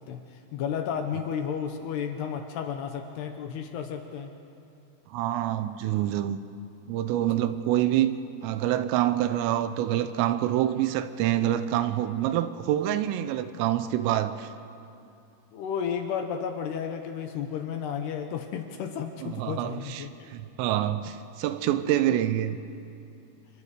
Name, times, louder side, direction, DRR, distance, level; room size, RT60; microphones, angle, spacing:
voice 1, 0.1-4.3 15.5-20.1, left 7 dB, 75° left, 5 dB, 2.6 m, -32 dB
voice 2, 5.1-6.4 6.9-14.5 19.2-22.6, right 12 dB, 85° right, 11 dB, 3.4 m, -26 dB
28.5 x 26.5 x 5.0 m, 2.7 s
omnidirectional pair, 6.0 m